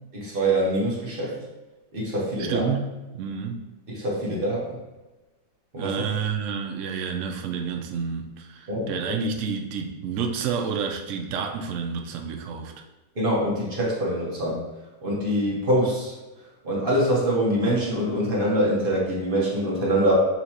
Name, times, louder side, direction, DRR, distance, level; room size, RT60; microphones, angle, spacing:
voice 1, 0.1-1.4 1.9-2.7 3.9-4.8 5.7-6.0 8.7-9.1 13.2-14.6 15.0-16.1 16.6-20.1, right 1 dB, 35° right, -5 dB, 1.0 m, -24 dB
voice 2, 2.4-2.9 3.1-3.6 5.8-12.7, right 6 dB, 75° right, 3 dB, 0.7 m, -29 dB
5.7 x 2.9 x 2.8 m, 1.1 s
omnidirectional pair, 1.9 m